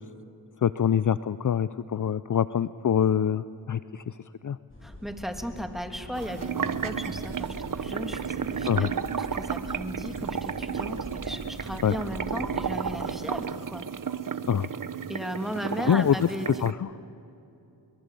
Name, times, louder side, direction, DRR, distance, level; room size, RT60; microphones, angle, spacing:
voice 1, 0.6-4.1 4.4-4.6 8.7-8.9 11.8-11.9 14.5-14.7 15.8-16.2 16.6-16.9, left 9 dB, 45° left, 15 dB, 0.6 m, -25 dB
sound 1, 4.7-12.8, left 1 dB, 30° left, 7.9 m, -44 dB
voice 2, 4.8-13.8 15.1-16.5, equal, ahead, 5 dB, 2.9 m, -36 dB
sound 2, 6.1-16.7, right 7 dB, 45° right, 1.0 m, -33 dB
23.5 x 23.0 x 8.4 m, 2.7 s
cardioid pair, 40°, 43 cm